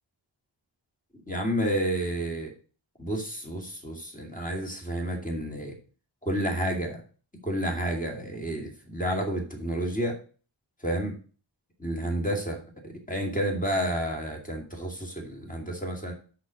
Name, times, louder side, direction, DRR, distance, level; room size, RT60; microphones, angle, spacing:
voice 1, 1.3-2.5 3.0-5.7 6.2-7.0 7.4-10.2 10.8-11.1 11.8-16.1, right 1 dB, 15° left, 1 dB, 2.4 m, -30 dB
6.2 x 6.0 x 6.4 m, 0.39 s
wide cardioid pair, 50°, 47 cm